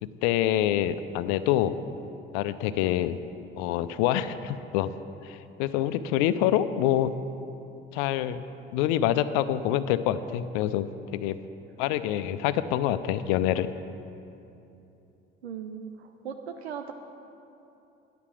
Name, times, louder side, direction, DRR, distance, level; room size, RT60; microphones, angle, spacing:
voice 1, 0.0-1.8 2.3-3.2 3.6-4.9 5.2-7.1 7.9-8.4 8.7-11.4 11.8-13.7, left 12 dB, 65° left, 13 dB, 0.5 m, -26 dB
voice 2, 15.4-16.9, right 7 dB, 85° right, 5 dB, 0.5 m, -38 dB
9.7 x 5.9 x 7.3 m, 2.8 s
figure-of-eight pair, 50°, 31 cm